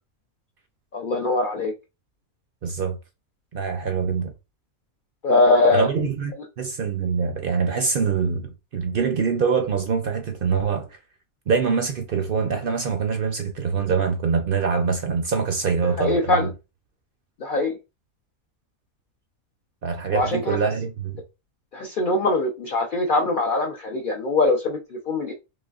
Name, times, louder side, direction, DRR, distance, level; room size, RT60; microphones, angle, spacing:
voice 1, 0.9-1.7 5.2-5.9 16.0-16.5 17.4-17.7 20.1-20.6 21.7-25.3, left 2 dB, 80° left, 0.4 m, -22 dB
voice 2, 2.6-3.0 3.5-4.3 5.7-10.9 11.5-16.5 19.8-21.2, right 5 dB, 65° right, 0.5 m, -24 dB
4.0 x 3.1 x 2.3 m
omnidirectional pair, 1.5 m